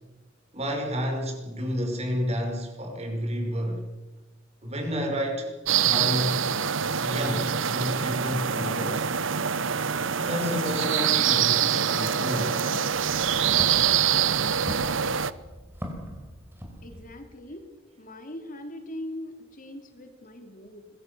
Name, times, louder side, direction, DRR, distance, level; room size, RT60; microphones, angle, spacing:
voice 1, 0.5-3.9 4.6-5.5 5.8-6.5 7.0-9.1 10.1-12.9, equal, 35° right, 3 dB, 5.8 m, -30 dB
sound 1, 5.7-15.3, right 8 dB, 85° right, 1.0 m, -25 dB
Walk footsteps, 12.8-17.3, equal, 10° right, 5.0 m, -40 dB
voice 2, 16.8-17.7 18.0-20.9, left 1 dB, 45° left, 5 dB, 3.1 m, -40 dB
25.5 x 22.0 x 7.0 m, 1.2 s
head